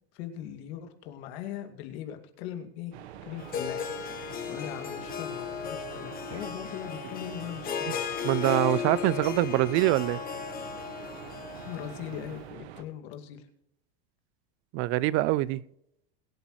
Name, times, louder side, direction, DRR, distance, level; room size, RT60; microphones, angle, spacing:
voice 1, 0.1-2.9 3.2-3.9 4.5-8.0 11.6-13.5, left 10 dB, 70° left, 2.4 m, -40 dB
sound 1, 2.9-12.8, right 10 dB, 80° right, 1.2 m, -45 dB
Harp, 3.4-12.4, left 8 dB, 25° left, 1.9 m, -36 dB
voice 2, 8.2-10.2 14.7-15.6, right 18 dB, 45° right, 0.4 m, -24 dB
22.5 x 8.1 x 3.1 m
supercardioid pair, 145°, 32 cm